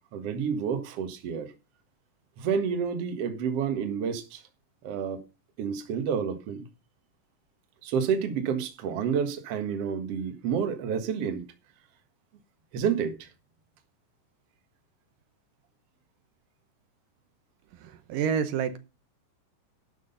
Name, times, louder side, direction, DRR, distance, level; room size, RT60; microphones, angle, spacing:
voice 1, 0.1-1.5 2.4-4.4 4.8-5.2 5.6-6.7 7.8-11.4 12.7-13.3, right 7 dB, 55° right, 2.2 m, -29 dB
voice 2, 17.7-18.8, right 7 dB, 80° right, 2.6 m, -29 dB
12.0 x 6.3 x 5.4 m
omnidirectional pair, 3.9 m